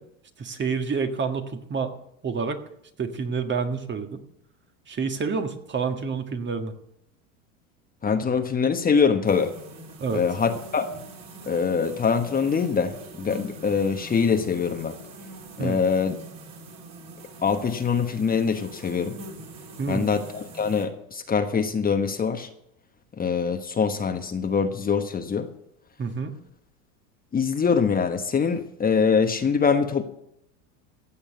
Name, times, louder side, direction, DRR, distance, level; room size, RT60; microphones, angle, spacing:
voice 1, 0.4-1.9 2.2-2.6 3.0-4.2 4.9-6.7 10.0-10.2 15.6-15.8 19.8-20.1 26.0-26.3, right 5 dB, 25° right, 7 dB, 1.7 m, -28 dB
voice 2, 8.0-9.5 10.1-10.8 11.5-14.9 15.6-16.2 17.4-19.1 19.9-22.5 23.2-25.5 27.3-30.0, left 6 dB, 20° left, 6 dB, 1.2 m, -24 dB
sound 1, 9.3-20.9, right 2 dB, 40° right, 4.0 m, -43 dB
15.5 x 7.2 x 8.2 m, 0.76 s
supercardioid pair, 110°, 41 cm